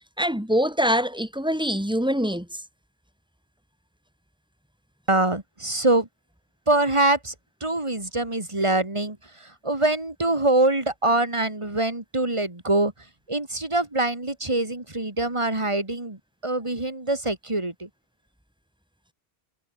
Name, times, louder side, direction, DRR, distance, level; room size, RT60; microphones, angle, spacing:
voice 1, 0.2-2.6, equal, 5° right, 2.3 m, -24 dB
voice 2, 5.1-6.1 6.7-7.3 7.6-9.2 9.6-12.9 13.3-16.2 16.4-17.9, right 2 dB, 30° right, 2.6 m, -24 dB
omnidirectional pair, 1.1 m